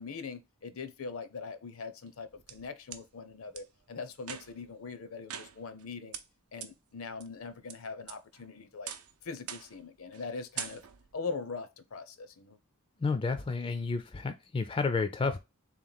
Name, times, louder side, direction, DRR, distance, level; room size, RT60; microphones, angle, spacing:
voice 1, 0.0-6.2 6.5-8.9 9.2-10.8 11.1-12.6, left 4 dB, 70° left, 0.6 m, -41 dB
sound 1, 2.1-3.0 3.5-3.6 4.2-4.7 5.3-5.8 6.1-6.2 6.6-6.7 7.2-7.7 8.1-8.5 8.9-9.1 9.5-9.8 10.1-10.3 10.6-11.1, right 9 dB, 85° right, 0.6 m, -42 dB
voice 2, 13.0-15.4, left 4 dB, 25° left, 0.3 m, -31 dB
3.6 x 3.0 x 3.9 m
head